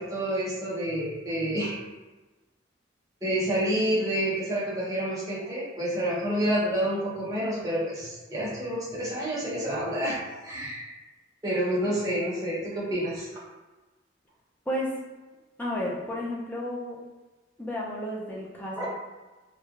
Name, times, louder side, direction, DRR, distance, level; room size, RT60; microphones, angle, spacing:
voice 1, 0.0-1.7 3.2-10.9 11.4-13.3 18.8-18.9, right 1 dB, 20° right, -8 dB, 0.8 m, -28 dB
voice 2, 14.7-15.0 15.6-17.0 17.6-18.9, left 1 dB, 10° left, -4 dB, 0.5 m, -32 dB
3.0 x 2.3 x 2.4 m, 1.2 s
head